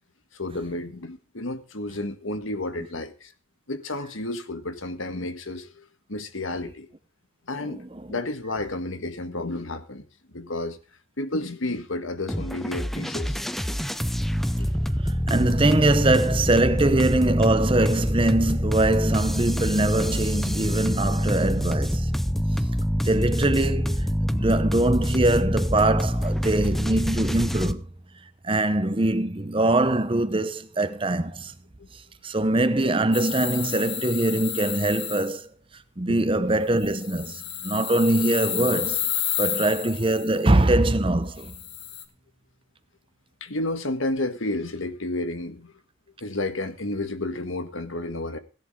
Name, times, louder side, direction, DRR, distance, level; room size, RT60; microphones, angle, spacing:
voice 1, 0.3-3.3 3.7-6.9 7.5-7.8 8.1-10.8 11.2-13.4 14.5-14.7 21.6-21.7 31.8-31.9 36.1-36.2 43.4-45.7 46.2-48.4, left 2 dB, 80° left, 1.7 m, -31 dB
sound 1, 12.3-27.7, equal, ahead, 0.5 m, -25 dB
voice 2, 15.0-22.1 23.0-27.9 28.4-31.5 32.2-35.5 36.0-39.0 39.4-41.6, right 2 dB, 25° right, 0.8 m, -23 dB
sound 2, 33.1-35.3 36.8-40.3 41.4-42.0, left 10 dB, 60° left, 1.9 m, -31 dB
16.5 x 11.0 x 3.7 m
head